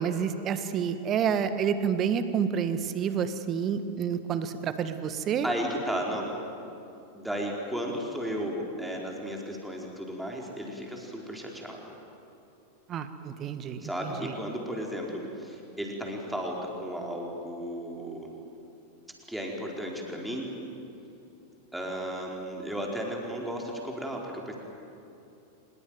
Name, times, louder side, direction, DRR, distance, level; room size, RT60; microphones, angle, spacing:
voice 1, 0.0-5.5 12.9-14.3, right 7 dB, 30° right, 11 dB, 1.6 m, -29 dB
voice 2, 5.4-6.3 7.1-11.8 13.8-18.4 19.3-20.5 21.7-24.6, equal, 5° right, -1 dB, 4.8 m, -34 dB
25.0 x 21.5 x 9.4 m, 2.8 s
figure-of-eight pair, 90°, 0 cm